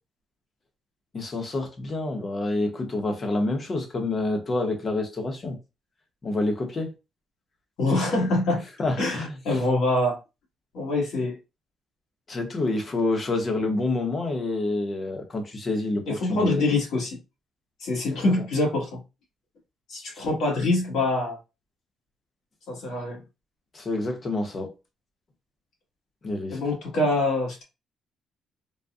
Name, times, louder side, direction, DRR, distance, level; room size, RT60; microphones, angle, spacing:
voice 1, 1.1-5.6 6.2-6.9 8.8-9.6 12.3-16.5 18.1-18.4 20.1-20.3 23.7-24.7 26.2-26.6, left 2 dB, 40° left, 0.9 m, -28 dB
voice 2, 7.8-8.6 9.0-10.2 10.7-11.4 16.1-17.2 17.8-19.0 19.9-21.4 22.7-23.2 26.5-27.6, left 2 dB, 80° left, 1.6 m, -25 dB
4.0 x 2.2 x 2.4 m
cardioid pair, 90°, 0 cm